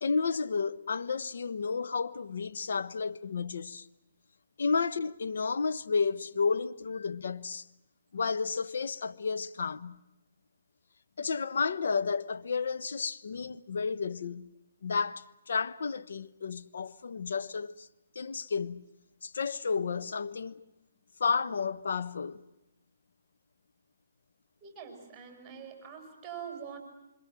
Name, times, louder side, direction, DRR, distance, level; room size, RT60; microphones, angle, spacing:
voice 1, 0.0-3.9 4.6-7.7 8.1-10.0 11.2-14.5 14.8-17.9 18.1-18.9 19.2-20.6 21.2-22.4, left 5 dB, 70° left, 1.1 m, -32 dB
voice 2, 24.6-26.8, right 7 dB, 15° right, 7.9 m, -44 dB
26.5 x 26.5 x 7.6 m
hypercardioid pair, 145°, 0 cm